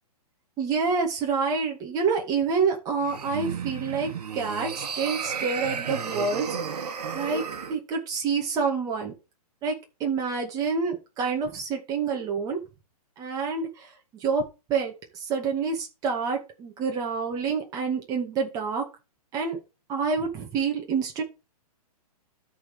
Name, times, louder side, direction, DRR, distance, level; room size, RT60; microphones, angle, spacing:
voice 1, 0.6-6.6 7.1-7.4 7.7-9.1 9.6-12.6 13.2-13.9 14.2-14.4 14.7-18.9 19.3-19.6 19.9-21.2, right 5 dB, 20° right, 1 dB, 2.2 m, -27 dB
sound 1, 3.0-7.8, right 6 dB, 80° right, 1.6 m, -33 dB
13.0 x 4.4 x 5.2 m, 0.29 s
hypercardioid pair, 160°, 20 cm